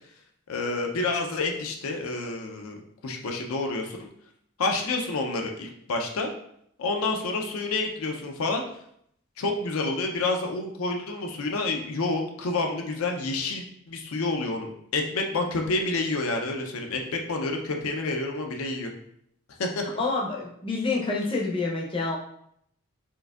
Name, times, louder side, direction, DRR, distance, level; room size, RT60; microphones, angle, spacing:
voice 1, 0.5-4.1 4.6-6.3 6.8-8.6 9.4-18.9 19.6-19.8, left 3 dB, 75° left, 3 dB, 0.5 m, -29 dB
voice 2, 20.0-22.2, left 3 dB, 25° left, -2 dB, 0.5 m, -27 dB
4.5 x 2.6 x 2.3 m, 0.70 s
head